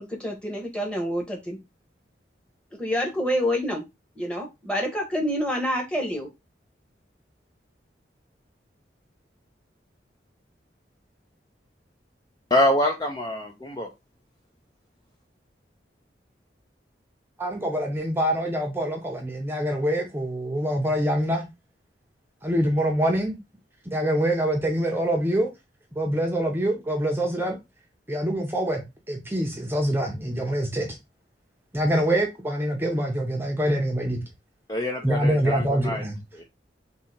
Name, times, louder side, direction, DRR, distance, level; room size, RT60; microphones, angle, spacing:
voice 1, 0.0-1.6 2.8-3.8 4.2-6.3, equal, 5° left, 1.1 m, -27 dB
voice 2, 12.5-13.9 34.7-36.0 36.3-36.4, left 1 dB, 20° left, 0.5 m, -25 dB
voice 3, 17.4-21.5 22.4-23.4 23.9-25.5 26.0-27.6 28.1-28.8 29.1-30.9 31.7-34.2 35.0-36.2, right 1 dB, 10° right, 0.7 m, -25 dB
3.8 x 2.8 x 4.3 m
head